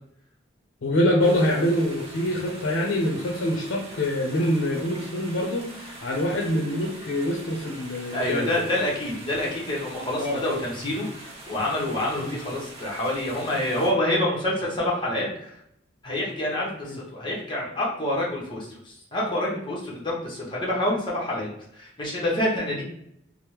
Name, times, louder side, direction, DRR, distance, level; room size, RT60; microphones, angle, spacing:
voice 1, 0.8-8.5 10.2-10.4 12.2-12.4 16.8-17.0 22.7-22.8, left 1 dB, 85° left, -1 dB, 0.5 m, -25 dB
sound 1, 1.2-13.9, right 1 dB, 30° right, 0.5 m, -43 dB
voice 2, 8.1-15.6 16.0-22.8, left 1 dB, 25° left, -4 dB, 0.8 m, -27 dB
3.3 x 2.0 x 2.9 m, 0.73 s
head